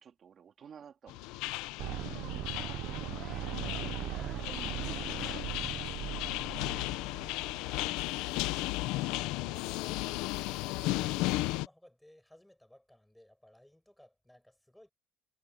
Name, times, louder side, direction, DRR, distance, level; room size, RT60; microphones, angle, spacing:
voice 1, 0.0-1.5 4.5-5.1, right 7 dB, 30° right, 2.9 m, -53 dB
sound 1, 1.1-11.7, left 19 dB, 75° left, 0.7 m, -35 dB
sound 2, 1.8-7.8, right 14 dB, 50° right, 0.6 m, -39 dB
sound 3, 3.2-9.7, right 3 dB, 15° right, 4.2 m, -58 dB
voice 2, 9.3-14.9, left 1 dB, ahead, 7.0 m, -61 dB
cardioid pair, 180°, 0 cm